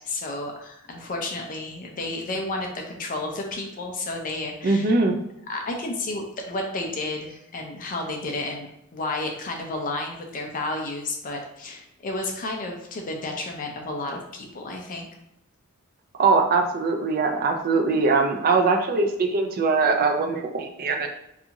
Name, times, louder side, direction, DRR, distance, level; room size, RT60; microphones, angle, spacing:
voice 1, 0.1-4.9 5.5-15.1, left 2 dB, 40° left, 2 dB, 0.4 m, -31 dB
voice 2, 4.6-5.2 16.2-21.1, right 4 dB, 45° right, 4 dB, 0.4 m, -21 dB
2.6 x 2.4 x 2.8 m, 0.80 s
head